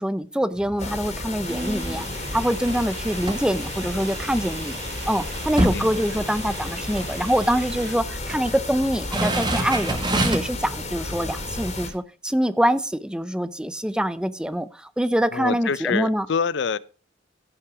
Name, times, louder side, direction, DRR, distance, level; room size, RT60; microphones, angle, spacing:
voice 1, 0.0-2.1 2.3-4.8 5.1-16.3, equal, 5° right, 0.5 m, -25 dB
sound 1, 0.5-1.0 1.5-4.5 4.9-5.0 5.3-6.7 6.9-7.1 7.9-8.6 9.0-10.6 11.1-11.2, right 1 dB, 20° right, 1.8 m, -28 dB
sound 2, 0.8-11.9, left 2 dB, 35° left, 2.6 m, -33 dB
sound 3, 1.4-7.9, right 5 dB, 60° right, 3.0 m, -40 dB
voice 2, 15.3-16.8, left 5 dB, 60° left, 0.5 m, -26 dB
15.5 x 5.8 x 4.8 m
head